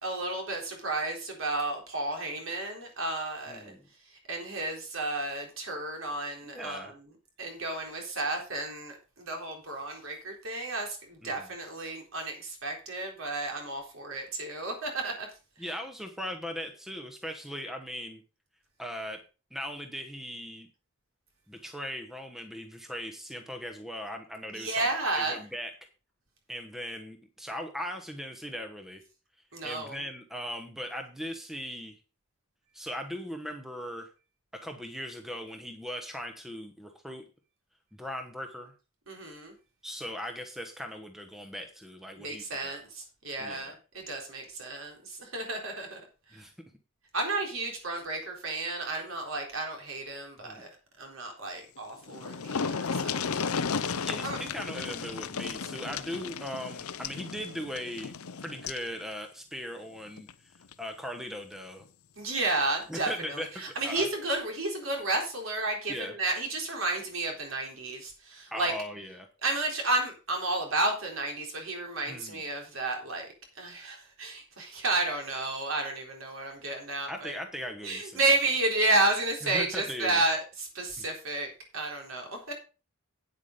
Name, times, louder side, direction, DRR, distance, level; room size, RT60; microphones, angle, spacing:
voice 1, 0.0-3.7 4.1-6.9 7.4-15.3 24.5-25.4 29.5-30.0 39.1-39.5 42.2-46.0 46.3-46.4 47.1-50.7 51.0-53.4 54.2-54.4 62.2-68.7 69.4-73.3 73.6-77.3 77.8-82.5, right 2 dB, 65° right, 2 dB, 3.7 m, -32 dB
voice 2, 3.5-3.8 6.4-6.9 11.2-11.5 15.6-18.2 18.8-19.2 19.5-20.7 21.5-25.7 26.5-29.0 29.6-32.0 32.7-34.1 34.5-37.2 38.0-38.7 39.8-42.8 43.4-43.7 46.3-46.5 50.4-50.6 54.0-58.1 58.4-61.8 62.9-63.5 63.8-64.1 65.9-66.2 68.5-69.3 72.1-72.4 77.1-78.2 79.4-80.2 81.0-81.1, equal, ahead, 5 dB, 1.0 m, -39 dB
sound 1, 51.8-51.9 52.1-58.9 60.2-60.3 60.7-60.8, left 5 dB, 80° left, 0.7 m, -34 dB
9.2 x 8.3 x 5.1 m, 0.33 s
head